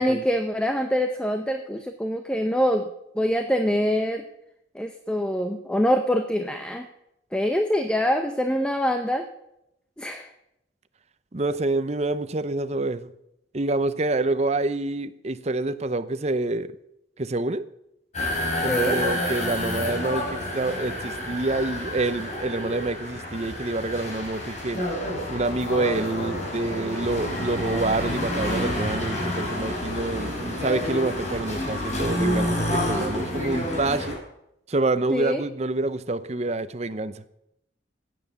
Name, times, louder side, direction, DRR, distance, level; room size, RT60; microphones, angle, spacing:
voice 1, 0.0-2.9 3.2-4.2 4.7-6.9 7.3-9.2 10.0-10.3 18.7-19.0 35.1-35.4, equal, 5° left, 6 dB, 0.7 m, -24 dB
voice 2, 11.3-13.1 13.5-16.7 17.2-17.7 18.6-24.8 25.3-34.2 34.7-37.2, right 2 dB, 35° right, 13 dB, 0.7 m, -27 dB
sound 1, 18.1-34.1, left 1 dB, 40° left, 5.2 m, -29 dB
15.0 x 9.5 x 7.0 m, 0.83 s
head